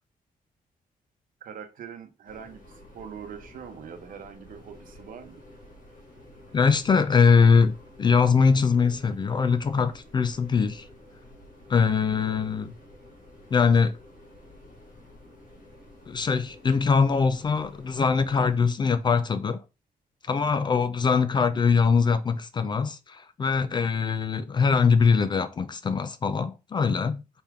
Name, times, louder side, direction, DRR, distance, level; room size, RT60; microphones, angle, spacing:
voice 1, 1.4-5.4 21.5-21.6, right 7 dB, 60° right, 0.8 m, -43 dB
sound 1, 2.2-18.6, left 1 dB, 65° left, 2.2 m, -50 dB
voice 2, 6.5-10.9 11.7-12.7 13.5-14.0 16.1-19.6 20.2-27.2, left 5 dB, 30° left, 0.3 m, -22 dB
4.2 x 3.5 x 3.5 m
wide cardioid pair, 175°, 16 cm